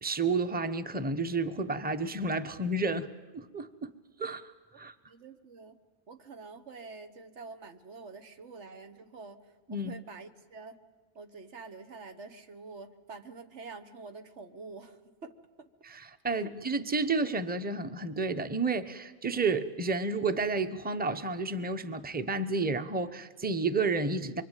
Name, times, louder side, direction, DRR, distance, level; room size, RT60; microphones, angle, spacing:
voice 1, 0.0-3.9 4.2-4.5 4.8-4.9 9.7-9.9 15.8-24.4, right 3 dB, 10° right, 0.8 m, -31 dB
voice 2, 5.1-5.8 6.1-9.4 9.7-10.8 11.2-15.3 16.3-16.5, right 4 dB, 90° right, 1.6 m, -47 dB
24.5 x 24.0 x 9.2 m
omnidirectional pair, 1.1 m